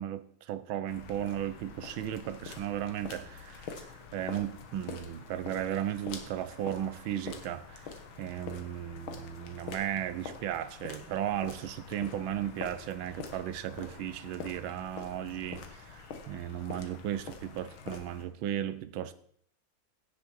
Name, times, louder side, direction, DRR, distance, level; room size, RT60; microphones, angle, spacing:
voice 1, 0.0-3.7 4.1-7.9 8.2-19.1, right 11 dB, 90° right, 1.6 m, -35 dB
sound 1, 0.9-18.2, left 5 dB, 90° left, 2.2 m, -45 dB
16.5 x 6.7 x 4.7 m
omnidirectional pair, 2.1 m